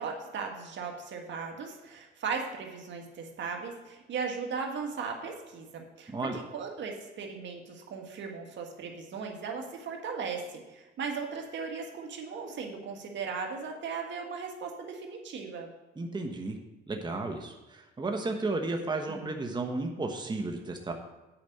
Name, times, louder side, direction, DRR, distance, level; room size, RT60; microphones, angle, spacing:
voice 1, 0.0-10.4 10.7-15.7 19.1-19.4, right 5 dB, 65° right, 2 dB, 1.7 m, -37 dB
voice 2, 6.1-6.4 16.0-16.6 16.9-20.9, right 2 dB, 20° right, 3 dB, 1.1 m, -33 dB
8.7 x 5.1 x 7.8 m, 1.1 s
cardioid pair, 90°, 20 cm